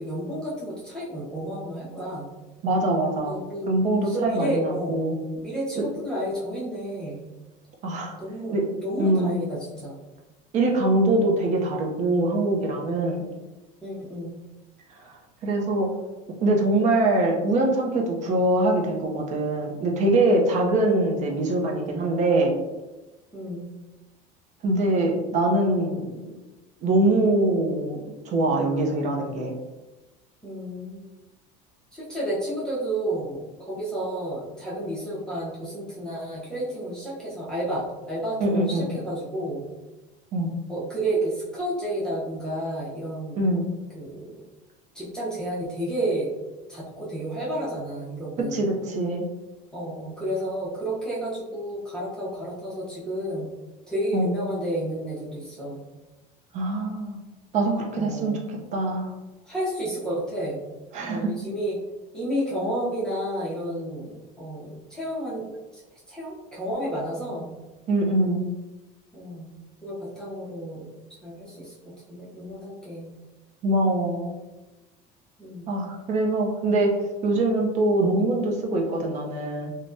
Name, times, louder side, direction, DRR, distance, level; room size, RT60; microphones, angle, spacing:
voice 1, 0.0-2.3 3.3-3.7 4.0-5.1 5.4-7.2 8.2-10.0 13.8-14.3 23.3-23.7 30.4-31.0 31.9-33.4 33.7-39.7 40.7-43.4 43.9-44.3 44.9-46.3 46.7-48.6 49.7-53.5 53.9-55.8 57.9-58.4 59.4-60.6 61.0-61.8 62.1-65.5 65.7-67.5 69.1-69.5 69.8-70.9 71.2-71.7 72.1-73.1 75.4-75.7, right 1 dB, 5° left, -8 dB, 0.7 m, -31 dB
voice 2, 2.6-3.3 3.7-5.2 7.8-8.1 8.5-8.7 9.0-9.3 10.5-13.3 15.0-15.1 15.4-15.9 16.4-22.5 24.6-26.3 26.8-29.5 38.4-38.9 40.3-40.5 43.4-43.7 48.5-49.2 54.1-54.3 56.5-57.2 57.5-59.1 60.9-61.3 67.9-68.5 73.6-74.3 75.7-76.9 77.2-79.7, right 2 dB, 40° right, 1 dB, 0.6 m, -23 dB
3.3 x 2.2 x 2.6 m, 1.1 s
cardioid pair, 150°, 18 cm